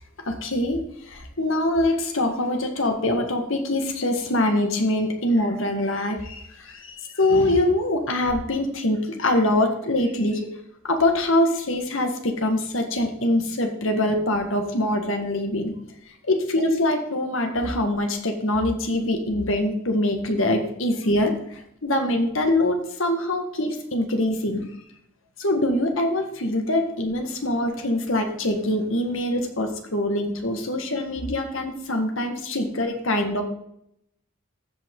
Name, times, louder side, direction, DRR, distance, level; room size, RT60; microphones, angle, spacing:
voice 1, 0.3-10.5 10.8-15.7 16.3-24.7 25.4-33.4, left 1 dB, 75° left, 4 dB, 1.8 m, -24 dB
14.5 x 5.6 x 3.8 m, 0.75 s
head